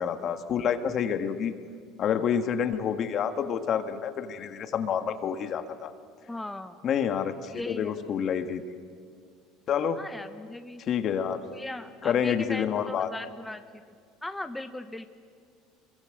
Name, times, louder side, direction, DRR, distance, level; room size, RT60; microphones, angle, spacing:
voice 1, 0.0-1.5 2.0-5.9 6.8-8.6 9.7-10.0 10.9-11.4 12.0-13.1, left 8 dB, 50° left, 9 dB, 1.8 m, -28 dB
voice 2, 6.3-6.8 7.5-8.0 10.0-10.8 11.5-13.8 14.2-15.1, left 1 dB, 10° left, 8 dB, 1.1 m, -38 dB
25.5 x 22.5 x 8.0 m, 2.1 s
hypercardioid pair, 85°, 0 cm